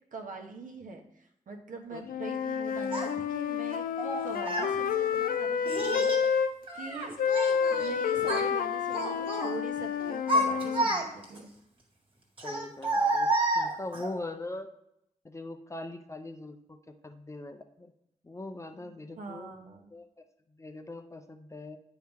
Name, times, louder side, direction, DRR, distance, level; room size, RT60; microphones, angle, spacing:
voice 1, 0.1-6.4 6.7-7.2 7.7-11.5 18.8-19.9, right 3 dB, 70° right, 2 dB, 1.2 m, -43 dB
Wind instrument woodwind instrument, 2.1-6.5 7.2-10.9, left 7 dB, 85° left, 0.4 m, -29 dB
Child speech kid speaking, 2.9-3.1 4.0-4.7 5.7-6.3 6.7-7.9 8.2-8.5 8.9-9.5 10.0-11.4 12.4-14.1, right 1 dB, 40° right, 1.8 m, -29 dB
voice 2, 12.4-14.7 15.2-16.8 17.0-17.9 18.2-19.5 19.9-20.1 20.6-21.8, left 2 dB, 20° left, 7 dB, 0.6 m, -41 dB
8.9 x 4.7 x 3.6 m, 0.79 s
cardioid pair, 75°, 14 cm